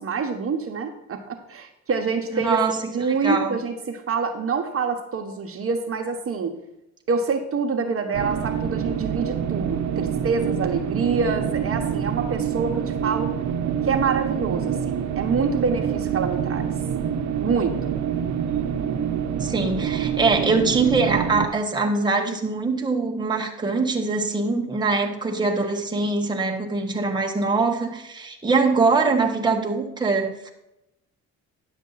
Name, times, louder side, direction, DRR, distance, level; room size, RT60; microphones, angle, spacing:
voice 1, 0.0-2.6 2.9-6.5 7.1-13.3 13.8-16.6 17.4-18.0, right 5 dB, 50° right, 4 dB, 1.3 m, -26 dB
voice 2, 2.3-2.9 3.2-3.6 19.4-30.5, right 3 dB, 15° right, 1 dB, 1.3 m, -23 dB
sound 1, 8.1-21.5, right 8 dB, 65° right, 0.7 m, -26 dB
10.5 x 7.1 x 4.1 m, 0.88 s
cardioid pair, 90°, 30 cm